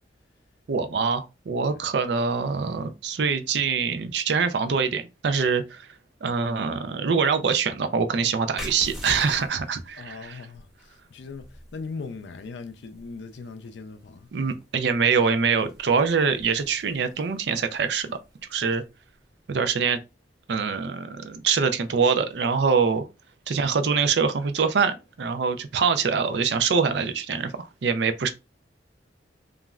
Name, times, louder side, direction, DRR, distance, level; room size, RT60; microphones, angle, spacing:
voice 1, 0.7-5.9 6.2-10.4 14.3-18.2 18.5-18.8 19.5-20.0 20.5-23.1 23.5-28.3, right 5 dB, 65° right, 0.4 m, -24 dB
sound 1, 8.5-19.8, equal, ahead, 0.7 m, -45 dB
voice 2, 10.0-14.3, left 4 dB, 75° left, 0.4 m, -39 dB
3.0 x 2.4 x 2.3 m
head